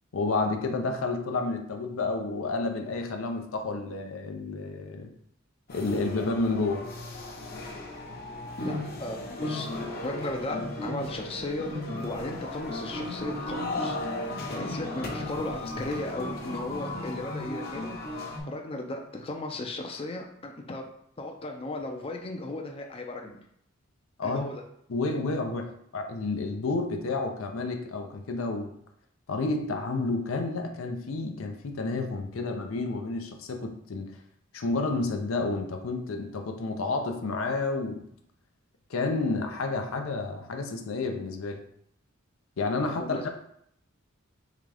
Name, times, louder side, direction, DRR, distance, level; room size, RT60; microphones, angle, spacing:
voice 1, 0.1-5.1 5.7-7.0 24.2-24.5 24.9-28.7 29.3-34.1 34.5-38.1 38.9-41.6 42.6-43.3, left 3 dB, 85° left, 5 dB, 0.6 m, -30 dB
sound 1, 5.7-18.4, left 2 dB, 50° left, 0.9 m, -35 dB
voice 2, 8.6-9.7 10.0-14.0 14.5-18.0 18.5-20.8 21.2-23.4 24.2-24.6 42.8-43.3, left 2 dB, 30° left, 3 dB, 0.4 m, -36 dB
3.8 x 3.5 x 3.3 m, 0.71 s
head